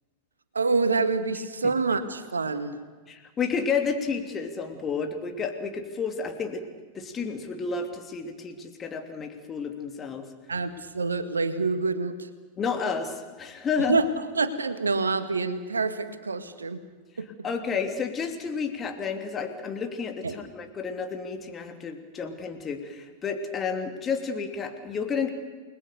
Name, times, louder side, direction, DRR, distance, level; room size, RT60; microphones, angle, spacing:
voice 1, 0.5-2.8 10.5-12.3 13.8-14.1 14.3-16.8 17.2-17.3 20.2-20.4, right 4 dB, 75° right, 11 dB, 1.7 m, -26 dB
voice 2, 3.1-6.7 6.9-10.3 12.6-14.0 17.4-25.3, left 5 dB, 25° left, 6 dB, 3.0 m, -31 dB
29.5 x 20.5 x 6.8 m, 1.4 s
figure-of-eight pair, 90°, 0 cm